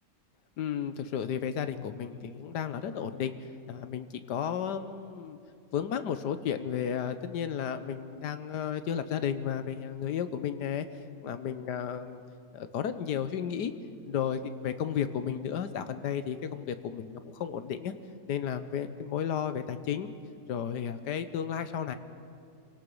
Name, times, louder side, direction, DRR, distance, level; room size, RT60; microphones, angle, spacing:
voice 1, 0.6-3.3 3.7-5.4 5.7-10.9 11.2-12.2 12.5-13.7 14.1-17.9 18.3-20.2 20.5-22.0, left 8 dB, 75° left, 11 dB, 1.5 m, -33 dB
27.5 x 17.5 x 5.5 m, 2.4 s
omnidirectional pair, 1.8 m